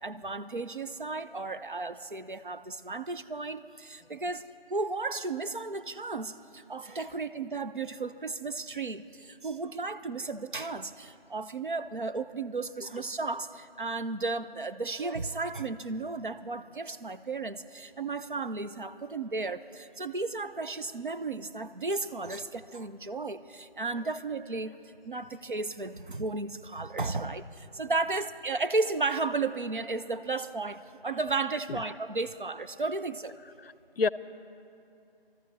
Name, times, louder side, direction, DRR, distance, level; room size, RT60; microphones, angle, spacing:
voice 1, 0.0-24.8 25.0-33.4, right 3 dB, 55° right, 11 dB, 0.6 m, -34 dB
voice 2, 33.4-34.1, left 4 dB, 75° left, 17 dB, 0.5 m, -34 dB
22.0 x 13.5 x 4.0 m, 2.6 s
figure-of-eight pair, 165°, 30 cm